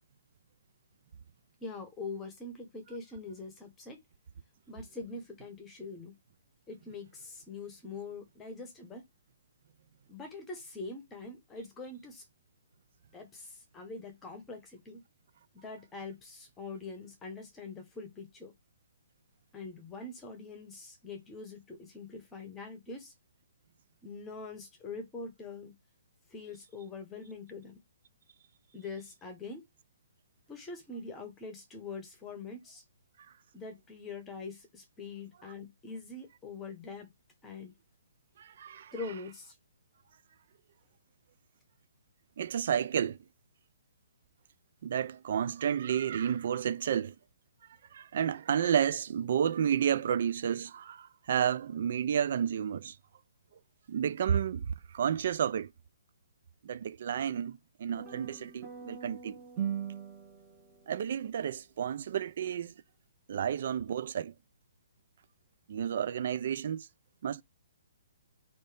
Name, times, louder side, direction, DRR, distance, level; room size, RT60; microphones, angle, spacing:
voice 1, 1.6-4.0 4.7-6.1 6.7-9.0 10.1-12.2 13.1-15.0 15.5-18.5 19.5-23.1 24.0-25.7 26.3-27.7 28.7-29.6 30.5-32.8 33.5-37.1 37.4-37.7 38.9-39.5, left 3 dB, 15° left, 1.2 m, -43 dB
voice 2, 38.4-38.9 42.4-43.2 44.8-47.1 47.9-53.0 53.9-55.7 56.6-59.4 60.9-62.7 63.3-64.3 65.7-66.9 67.2-67.4, right 8 dB, 55° right, 0.4 m, -31 dB
sound 1, 57.9-61.3, right 8 dB, 20° right, 1.7 m, -40 dB
5.3 x 2.8 x 3.4 m
hypercardioid pair, 155°, 0 cm